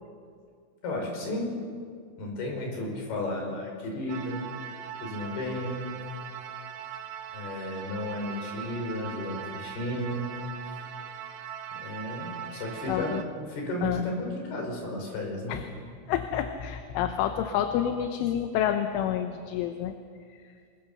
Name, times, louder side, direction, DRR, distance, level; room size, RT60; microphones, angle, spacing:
voice 1, 0.8-1.5 2.2-4.4 5.0-5.8 7.3-10.3 10.6-10.9 11.8-13.2 13.5-15.6, left 1 dB, 50° left, 1 dB, 6.9 m, -33 dB
sound 1, 4.1-13.2, right 9 dB, 70° right, 3.1 m, -40 dB
voice 2, 12.9-13.2 13.8-14.0 15.5-15.7 16.1-19.9 20.3-20.5, left 10 dB, 80° left, 6 dB, 3.4 m, -28 dB
29.5 x 21.5 x 6.9 m, 2.1 s
omnidirectional pair, 5.8 m